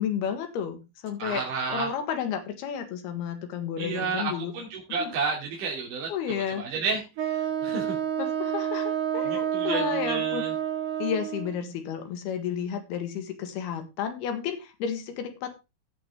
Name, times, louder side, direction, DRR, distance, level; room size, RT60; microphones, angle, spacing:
voice 1, 0.0-1.4 1.7-4.5 5.0-5.1 6.1-6.7 8.2-10.4 11.0-15.5, left 8 dB, 85° left, 7 dB, 3.7 m, -32 dB
voice 2, 1.2-1.9 3.8-8.0 9.2-10.5, right 5 dB, 55° right, -2 dB, 4.1 m, -32 dB
Wind instrument woodwind instrument, 7.2-11.6, right 10 dB, 80° right, 4.7 m, -29 dB
17.5 x 6.2 x 3.6 m, 0.26 s
omnidirectional pair, 4.4 m